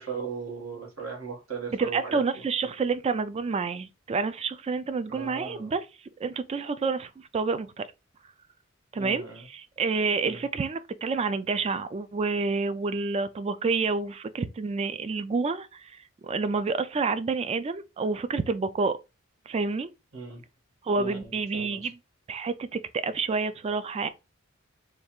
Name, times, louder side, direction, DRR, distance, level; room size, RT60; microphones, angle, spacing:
voice 1, 0.0-2.7 5.1-5.8 9.0-9.5 10.2-10.5 20.1-20.4 21.0-21.9, right 6 dB, 75° right, 1.5 m, -38 dB
voice 2, 1.7-5.9 6.2-7.8 8.9-15.8 16.2-19.0 19.5-19.9 20.8-21.9 22.3-24.1, right 4 dB, 30° right, 0.3 m, -28 dB
3.3 x 2.4 x 4.4 m
head